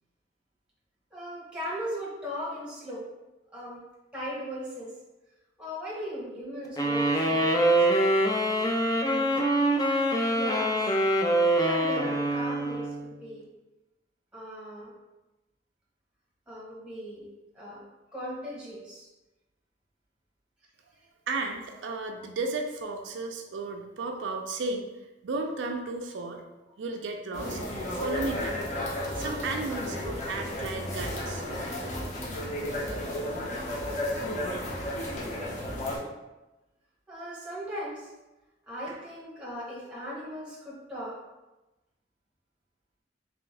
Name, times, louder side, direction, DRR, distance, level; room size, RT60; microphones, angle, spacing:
voice 1, 1.1-3.1 3.5-3.8 4.1-4.9 5.6-7.9 8.9-9.2 10.3-10.8 11.5-13.5 14.3-14.9 16.5-17.3 17.5-17.8 18.1-19.1 37.1-38.1 38.7-41.2, equal, 5° right, -6 dB, 1.1 m, -38 dB
sound 1, 6.8-13.2, right 1 dB, 20° left, 0.4 m, -24 dB
voice 2, 21.3-24.9 25.2-26.4 26.8-27.6 27.9-28.6 29.2-31.4, right 3 dB, 85° right, 3 dB, 0.4 m, -34 dB
sound 2, 27.3-36.0, left 1 dB, 40° left, 0.9 m, -33 dB
3.5 x 3.0 x 3.2 m, 1.0 s
head